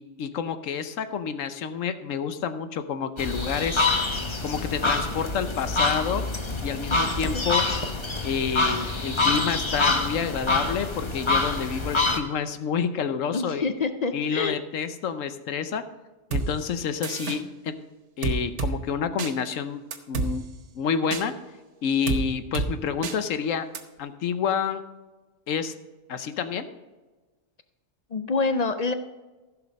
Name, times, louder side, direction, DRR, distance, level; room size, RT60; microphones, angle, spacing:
voice 1, 0.2-3.9 4.4-6.2 6.6-7.6 8.2-13.7 14.1-15.8 16.3-17.7 18.2-19.8 20.1-20.4 20.8-21.3 21.8-23.7 24.0-24.8 25.5-25.7 26.1-26.7, left 7 dB, 80° left, 11 dB, 1.1 m, -28 dB
sound 1, 3.2-12.2, left 3 dB, 25° left, 0.9 m, -26 dB
voice 2, 13.3-14.6 28.1-28.9, left 4 dB, 55° left, 10 dB, 0.4 m, -26 dB
sound 2, 16.3-16.5 17.0-17.4 18.2-18.7 19.2-19.3 19.9-20.3 21.1-21.2 22.1-22.2 22.5-22.7 23.0-23.2 23.7-23.8, right 4 dB, 65° right, 1.3 m, -27 dB
15.0 x 6.2 x 5.2 m, 1.2 s
omnidirectional pair, 1.3 m